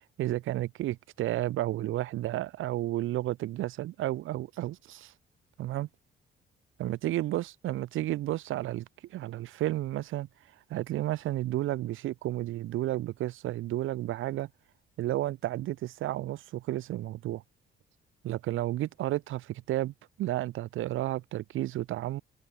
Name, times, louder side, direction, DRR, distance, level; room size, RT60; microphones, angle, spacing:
voice 1, 0.0-5.1 5.6-5.9 6.8-8.9 9.1-10.3 10.7-14.5 15.0-17.4 18.2-22.2, right 15 dB, 85° right, 2.1 m, -32 dB
open air
cardioid pair, 90°, 20 cm